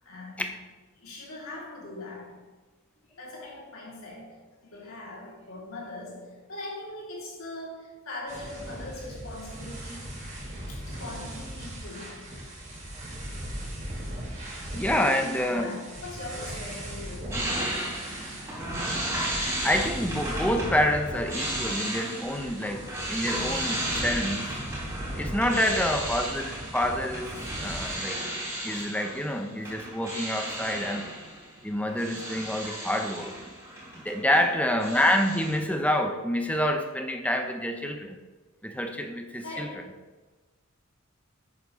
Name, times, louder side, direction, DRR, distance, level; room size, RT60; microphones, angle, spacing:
voice 1, 0.0-0.6 0.9-2.5 3.1-10.2 10.7-12.3 14.8-17.5 19.4-19.6 23.9-24.3 25.5-26.0 34.2-34.6 39.4-40.0, left 2 dB, 90° left, 3.0 m, -41 dB
sound 1, 8.3-28.0, right 1 dB, 35° right, 2.7 m, -38 dB
voice 2, 14.7-15.8 19.6-24.4 25.2-27.3 27.6-28.2 28.6-31.1 31.6-33.3 34.0-38.2 38.6-39.7, left 1 dB, 5° left, 0.8 m, -27 dB
sound 2, 17.3-34.5 34.8-35.6, right 1 dB, 15° right, 3.5 m, -34 dB
11.0 x 8.8 x 3.2 m
head